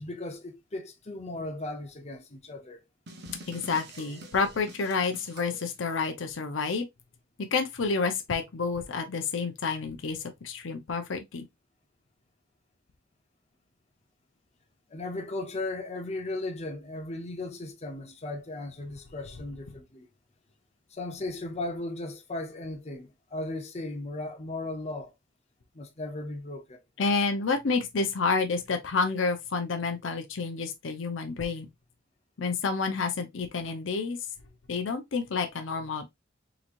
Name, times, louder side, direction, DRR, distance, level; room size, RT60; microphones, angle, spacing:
voice 1, 0.0-2.8 14.9-20.1 20.9-25.1 25.7-26.8, left 2 dB, 35° left, 0.8 m, -36 dB
sound 1, 3.1-5.7, right 1 dB, 60° right, 0.9 m, -46 dB
voice 2, 3.5-6.9 7.5-11.4 27.0-31.7 32.4-34.2 34.7-36.1, left 4 dB, 85° left, 0.6 m, -29 dB
3.8 x 3.0 x 2.5 m
head